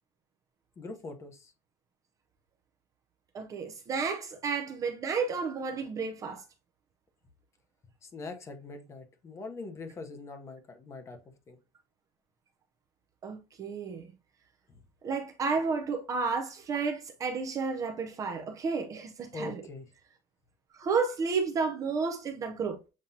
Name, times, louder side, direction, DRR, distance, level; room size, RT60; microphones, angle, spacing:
voice 1, 0.8-1.5 8.0-11.2 11.5-11.6 14.7-14.8 19.3-19.9, left 3 dB, 20° left, 0.9 m, -42 dB
voice 2, 3.3-6.4 13.2-14.1 15.0-19.6 20.7-22.8, right 5 dB, 25° right, 0.5 m, -32 dB
7.4 x 2.7 x 2.7 m
cardioid pair, 170°, 13 cm